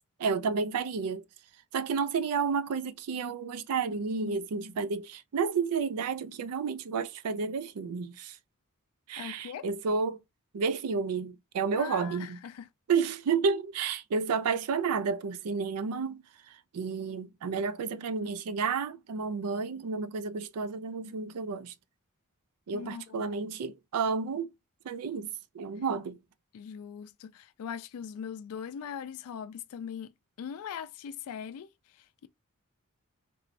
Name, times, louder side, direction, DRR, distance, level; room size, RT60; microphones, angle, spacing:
voice 1, 0.2-1.2 1.7-8.4 9.1-10.2 10.5-12.4 12.9-21.7 22.7-24.5 24.8-26.2, right 5 dB, 85° right, 0.4 m, -31 dB
voice 2, 9.2-9.7 11.7-12.7 22.7-23.3 26.5-30.1 30.4-31.7, left 7 dB, 70° left, 0.3 m, -40 dB
3.0 x 2.5 x 3.1 m
head